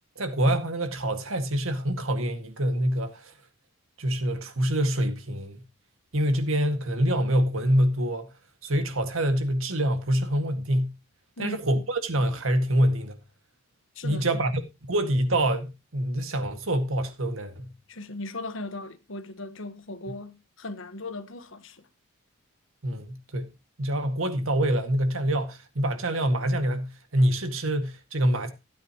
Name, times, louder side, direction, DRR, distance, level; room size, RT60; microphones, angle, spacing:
voice 1, 0.2-3.3 4.0-5.6 6.1-8.3 8.6-10.9 11.4-13.1 14.0-17.7 22.8-23.5 23.8-28.5, right 1 dB, 70° right, 1.9 m, -26 dB
voice 2, 13.9-14.4 17.9-21.9, left 2 dB, 60° left, 1.3 m, -38 dB
15.5 x 9.3 x 3.0 m
head